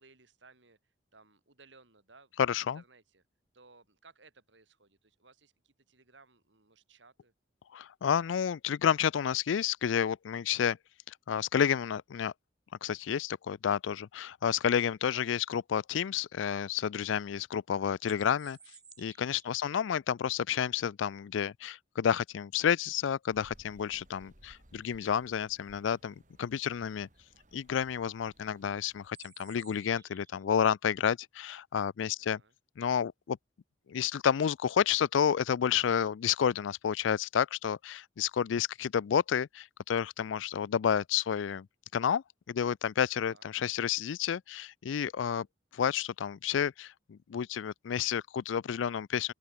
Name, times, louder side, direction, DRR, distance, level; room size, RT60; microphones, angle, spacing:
voice 1, 0.0-2.3 2.6-3.2 3.5-7.3 19.5-19.8 32.2-32.5 43.3-43.5, right 3 dB, 70° right, 3.7 m, -61 dB
voice 2, 2.4-2.8 7.7-10.8 11.3-12.3 12.8-18.6 19.0-27.1 27.5-32.4 32.8-33.4 33.9-41.7 41.9-45.5 45.7-49.3, left 8 dB, 80° left, 0.4 m, -30 dB
sound 1, 17.8-19.7 24.2-24.3 24.7-25.1 27.1-27.2 27.6-27.9 29.0-30.4, right 6 dB, 20° right, 7.4 m, -57 dB
sound 2, 23.3-29.1, right 1 dB, 40° right, 5.9 m, -61 dB
open air
head